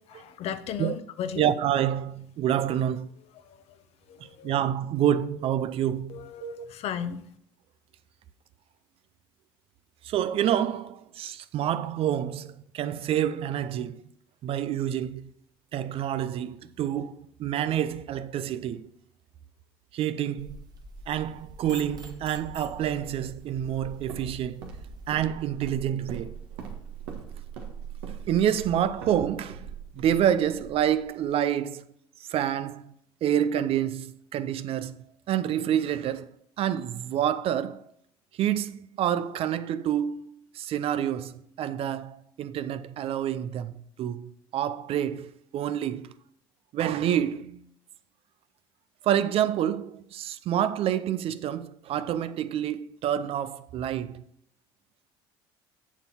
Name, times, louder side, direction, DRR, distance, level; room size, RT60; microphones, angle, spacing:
voice 1, 0.1-1.5 3.4-3.6 4.1-4.5 6.1-7.2, left 8 dB, 55° left, 0.8 m, -35 dB
voice 2, 1.4-3.1 4.4-6.7 10.0-14.0 14.4-15.3 15.7-18.9 19.9-20.6 21.1-24.6 25.1-26.3 28.3-29.7 30.0-31.8 32.3-32.9 33.2-35.0 35.3-36.3 36.6-37.9 38.4-43.7 44.0-46.1 46.7-47.7 49.0-54.2, right 10 dB, 55° right, 0.6 m, -28 dB
sound 1, 20.4-25.2, right 1 dB, 35° right, 1.4 m, -46 dB
Walk footsteps, 23.5-31.4, right 7 dB, 75° right, 1.6 m, -42 dB
7.3 x 7.1 x 4.3 m
hypercardioid pair, 65°, 12 cm